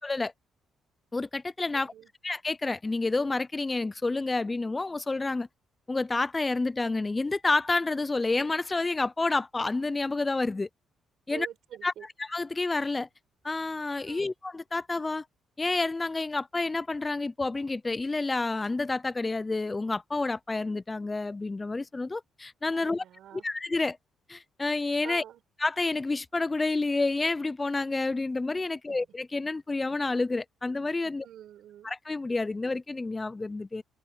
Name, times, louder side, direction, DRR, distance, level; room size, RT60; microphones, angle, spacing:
voice 1, 1.1-1.9 2.2-5.5 5.9-10.7 11.3-11.5 11.8-11.9 12.2-13.1 13.4-15.2 15.6-23.0 23.4-24.0 24.3-25.2 25.6-31.3 31.8-33.8, left 3 dB, 20° left, 0.4 m, -29 dB
voice 2, 1.7-2.1 11.3-12.1 14.0-14.3 22.7-23.4 25.0-25.4 28.9-29.1 31.2-31.9, right 11 dB, 75° right, 5.7 m, -46 dB
cardioid pair, 90°, 0 cm